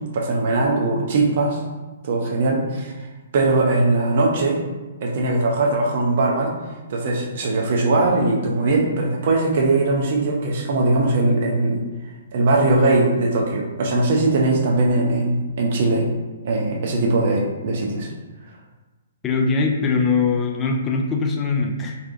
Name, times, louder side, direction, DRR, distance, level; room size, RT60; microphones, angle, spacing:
voice 1, 0.1-1.6 2.0-2.9 3.3-4.6 5.0-6.5 6.9-11.8 12.3-16.1 16.4-18.1, right 2 dB, 45° right, -1 dB, 0.7 m, -20 dB
voice 2, 19.2-22.0, left 4 dB, 15° left, 1 dB, 0.4 m, -21 dB
4.1 x 2.3 x 2.6 m, 1.2 s
figure-of-eight pair, 120°, 0 cm